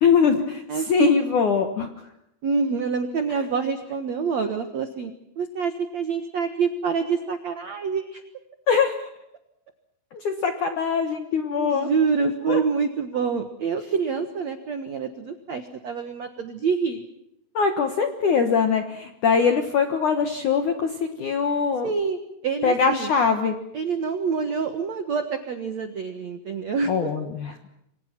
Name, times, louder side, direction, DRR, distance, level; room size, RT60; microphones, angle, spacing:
voice 1, 0.0-1.9 8.7-9.1 10.1-11.9 12.5-12.6 17.5-21.9 22.6-23.5 26.9-27.5, left 6 dB, 70° left, 6 dB, 1.9 m, -22 dB
voice 2, 0.7-1.2 2.4-8.2 11.6-17.1 21.8-23.1 23.7-27.1, right 5 dB, 85° right, 8 dB, 1.5 m, -26 dB
28.5 x 24.0 x 6.0 m, 0.80 s
omnidirectional pair, 5.7 m